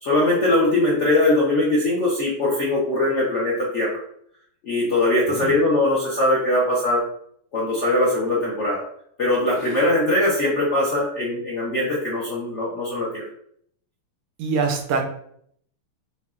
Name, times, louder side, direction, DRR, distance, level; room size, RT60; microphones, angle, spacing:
voice 1, 0.0-3.9 4.6-7.0 7.5-8.8 9.2-13.2, left 1 dB, 60° left, -6 dB, 0.7 m, -21 dB
voice 2, 14.4-15.1, right 4 dB, 80° right, 4 dB, 1.6 m, -24 dB
7.0 x 2.3 x 2.4 m, 0.67 s
omnidirectional pair, 2.4 m